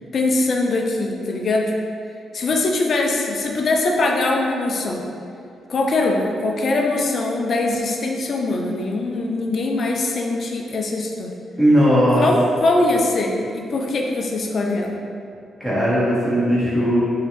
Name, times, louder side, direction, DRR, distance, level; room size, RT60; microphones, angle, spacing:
voice 1, 0.0-1.7 2.3-5.0 5.7-11.3 12.1-15.0, left 2 dB, 60° left, 1 dB, 0.4 m, -22 dB
voice 2, 11.6-12.3 15.6-17.0, equal, 20° right, -9 dB, 1.4 m, -17 dB
3.1 x 2.8 x 2.9 m, 2.5 s
hypercardioid pair, 50°, 0 cm